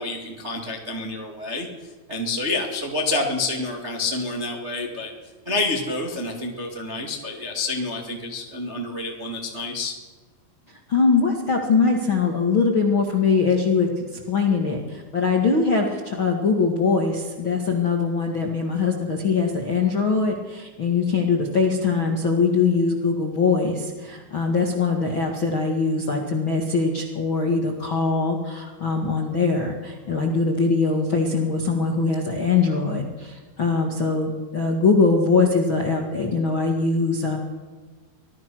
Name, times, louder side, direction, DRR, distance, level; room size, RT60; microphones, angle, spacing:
voice 1, 0.0-1.7 2.1-5.1 5.4-9.9, left 2 dB, 40° right, 0 dB, 0.9 m, -28 dB
voice 2, 10.9-37.4, left 4 dB, 50° left, 1 dB, 1.4 m, -22 dB
25.0 x 17.5 x 6.2 m, 1.4 s
omnidirectional pair, 5.5 m